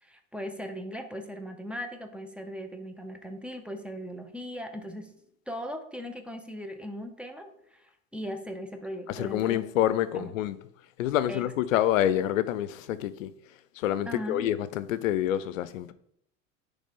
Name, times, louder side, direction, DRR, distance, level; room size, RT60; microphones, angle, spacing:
voice 1, 0.0-5.1 5.5-9.6 10.1-10.4 11.3-11.4 14.1-14.5, equal, 5° right, 0.8 m, -38 dB
voice 2, 9.1-10.6 11.0-13.3 13.8-15.9, left 12 dB, 85° left, 0.5 m, -27 dB
10.0 x 3.4 x 3.7 m
hypercardioid pair, 90°, 39 cm